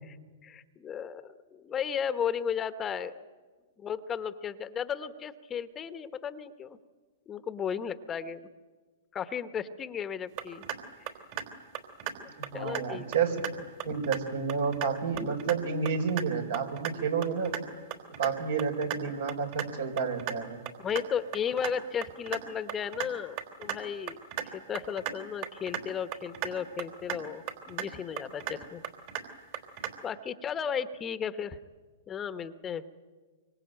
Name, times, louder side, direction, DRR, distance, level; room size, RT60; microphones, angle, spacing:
voice 1, 0.4-3.1 3.8-6.8 7.3-8.4 9.1-10.6 12.2-13.1 20.8-24.2 24.5-28.8 29.2-29.4 30.0-31.6 32.1-32.8, left 7 dB, 20° left, 12 dB, 1.1 m, -34 dB
sound 1, 10.4-10.8 11.1-11.5 11.7-12.1 12.4-12.8 13.1-13.5 13.8-14.2 14.5-14.9 15.2-15.5 15.8-16.2 16.5-16.9 17.2-17.6 17.9-18.3 18.6-19.0 19.3-19.7 20.0-20.3 20.6-21.0 21.3-21.7 22.0-22.4 22.7-23.1 23.4-23.8 24.1-24.4 24.7-25.1 25.4-25.8 26.1-26.5 26.8-27.2 27.5-27.8 28.2-28.6 28.8-29.2 29.5-29.9, right 10 dB, 50° right, 3.5 m, -34 dB
voice 2, 12.4-13.4 13.8-17.5 18.2-20.6, right 6 dB, 75° right, 4 dB, 4.7 m, -30 dB
25.5 x 24.0 x 9.0 m, 1.4 s
hypercardioid pair, 125°, 0 cm